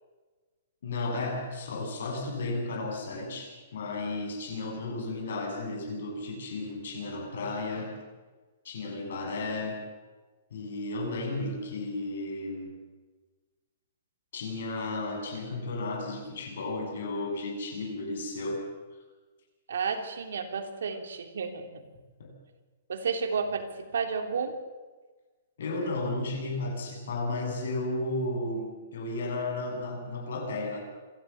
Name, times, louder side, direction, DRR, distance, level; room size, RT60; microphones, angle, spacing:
voice 1, 0.8-7.9 8.6-9.8 10.5-12.7 14.3-18.6 22.2-22.3 25.6-30.8, left 2 dB, 65° left, 3 dB, 7.5 m, -33 dB
voice 2, 19.7-21.8 22.9-24.5, right 5 dB, 85° right, 5 dB, 3.2 m, -32 dB
27.0 x 13.0 x 8.1 m, 1.3 s
hypercardioid pair, 170°, 0 cm